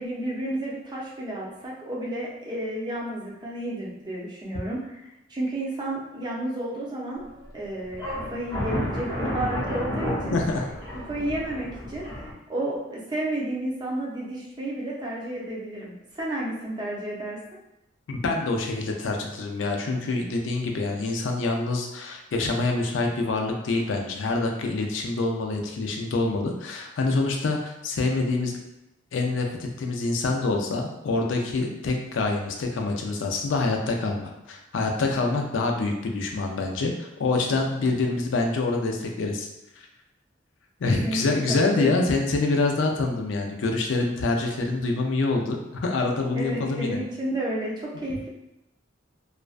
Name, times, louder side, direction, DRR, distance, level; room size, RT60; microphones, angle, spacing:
voice 1, 0.0-7.2 7.5-10.4 10.9-12.1 12.5-17.6 40.8-42.1 46.3-48.3, right 1 dB, 25° right, -4 dB, 0.5 m, -31 dB
sound 1, 7.2-7.5 7.9-12.3, left 1 dB, 20° left, 0.6 m, -31 dB
voice 2, 10.3-10.7 18.1-28.6 29.1-39.5 40.8-47.0, left 3 dB, 80° left, 2 dB, 0.4 m, -26 dB
2.4 x 2.2 x 2.4 m, 0.90 s
head